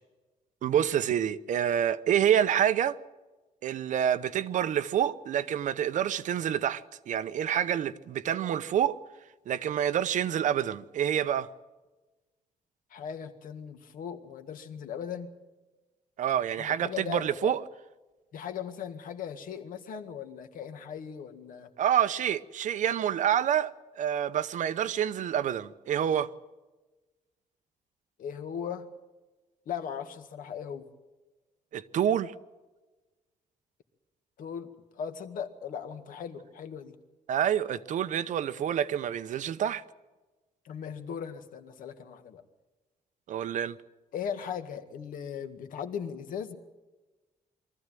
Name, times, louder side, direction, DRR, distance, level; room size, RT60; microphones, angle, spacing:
voice 1, 0.6-3.0 3.6-9.0 9.5-11.5 16.2-17.6 21.8-26.3 31.7-32.3 37.3-39.8 43.3-43.8, right 9 dB, 65° right, 0.9 m, -27 dB
voice 2, 12.9-15.3 16.6-17.5 18.3-21.7 28.2-28.9 29.7-30.9 34.4-37.0 40.6-42.4 44.1-46.6, left 7 dB, 80° left, 2.0 m, -38 dB
23.0 x 14.5 x 9.2 m
wide cardioid pair, 175°, 14 cm